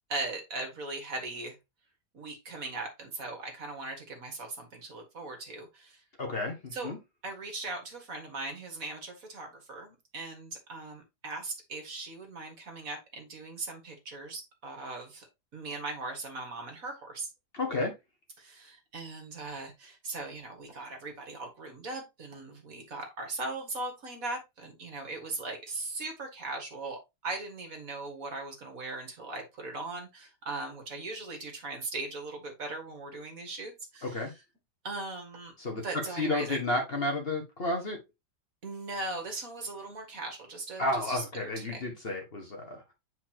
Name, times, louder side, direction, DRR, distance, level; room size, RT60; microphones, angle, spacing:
voice 1, 0.1-1.6 2.1-6.0 6.7-6.9 7.2-15.3 15.5-17.3 18.4-34.3 34.8-35.5 35.8-36.6 38.6-41.9, right 3 dB, 55° right, 2.1 m, -39 dB
voice 2, 6.2-7.0 17.5-17.9 34.0-34.3 35.6-35.8 36.2-38.0 40.8-42.8, left 2 dB, 35° left, 1.5 m, -31 dB
8.3 x 4.7 x 2.8 m
omnidirectional pair, 1.8 m